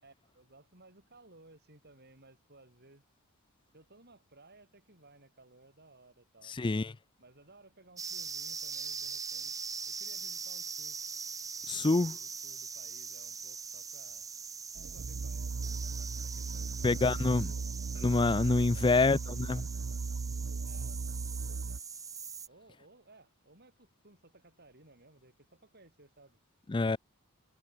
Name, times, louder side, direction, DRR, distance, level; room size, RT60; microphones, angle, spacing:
voice 1, 0.0-3.0 3.7-6.6 7.2-9.5 9.9-11.0 11.7-14.3 14.8-15.9 16.2-17.6 18.4-19.6 20.6-21.0 22.5-26.4, right 2 dB, 45° right, 7.2 m, -60 dB
voice 2, 6.5-6.9 11.7-12.2 16.8-17.5 18.0-19.7 26.7-27.0, left 3 dB, 20° left, 0.4 m, -27 dB
sound 1, 8.0-22.5, right 5 dB, 15° right, 0.8 m, -42 dB
sound 2, 14.8-21.8, right 4 dB, 60° right, 0.6 m, -37 dB
head